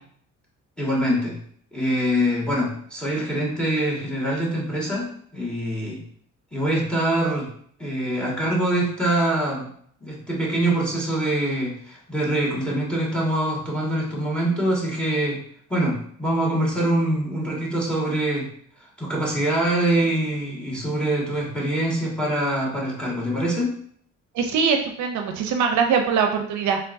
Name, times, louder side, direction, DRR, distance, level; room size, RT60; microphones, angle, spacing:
voice 1, 0.8-1.3 1.7-5.1 5.3-6.0 6.5-7.5 7.8-9.7 10.0-15.4 15.7-18.5 19.0-23.7, right 1 dB, 5° left, -3 dB, 1.7 m, -24 dB
voice 2, 24.3-26.8, right 6 dB, 70° right, 4 dB, 0.6 m, -22 dB
4.4 x 3.5 x 2.6 m, 0.63 s
cardioid pair, 90°, 30 cm